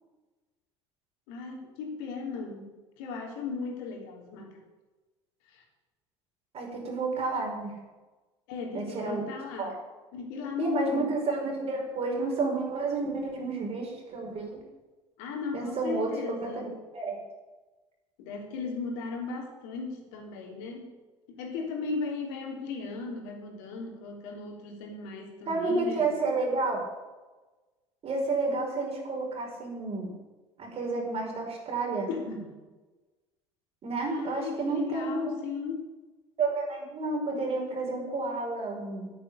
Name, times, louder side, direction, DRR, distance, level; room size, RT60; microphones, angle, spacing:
voice 1, 1.3-4.6 5.5-5.6 8.5-9.7 10.1-11.1 15.2-16.7 18.2-20.9 21.4-26.1 32.1-32.6 34.0-35.8, left 4 dB, 65° left, 2 dB, 3.4 m, -37 dB
voice 2, 6.5-7.7 8.7-9.2 9.6-9.7 10.6-14.6 15.5-16.1 16.4-17.2 25.5-26.8 28.0-30.1 30.6-32.1 33.8-35.3 36.4-39.1, right 3 dB, 45° right, 0 dB, 5.7 m, -30 dB
10.0 x 9.8 x 9.6 m, 1.2 s
figure-of-eight pair, 65°, 15 cm